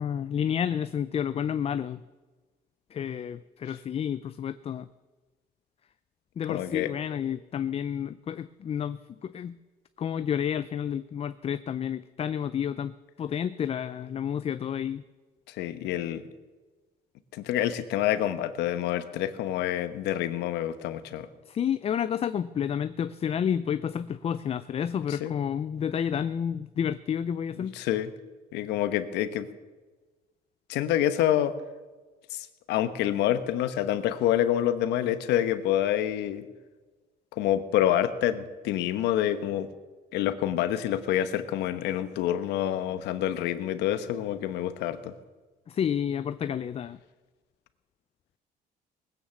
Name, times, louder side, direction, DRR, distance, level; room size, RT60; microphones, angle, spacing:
voice 1, 0.0-2.0 2.9-4.9 6.4-9.6 10.0-12.9 13.2-15.0 21.5-27.8 45.7-47.0, left 8 dB, 35° left, 13 dB, 0.5 m, -30 dB
voice 2, 6.5-6.9 15.5-16.2 17.3-21.3 25.1-25.3 27.6-28.1 28.5-29.5 30.7-31.5 32.3-36.4 37.3-39.7 40.1-45.1, left 11 dB, 85° left, 11 dB, 1.1 m, -27 dB
19.5 x 9.3 x 7.2 m, 1.3 s
cardioid pair, 110°, 17 cm